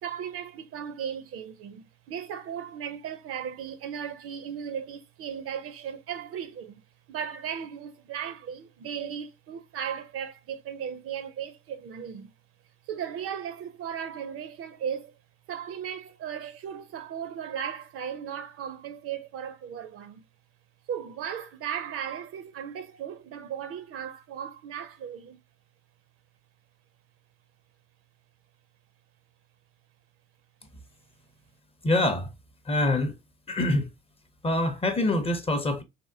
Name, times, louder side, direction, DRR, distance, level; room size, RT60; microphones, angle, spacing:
voice 1, 0.0-6.8 7.1-12.3 12.8-15.1 15.5-20.2 20.9-25.4, right 8 dB, 50° right, 0.5 m, -36 dB
voice 2, 31.8-32.3 32.7-33.2 33.5-33.9 34.4-35.8, left 1 dB, 20° left, 0.6 m, -25 dB
3.5 x 2.1 x 2.5 m
hypercardioid pair, 70°, 30 cm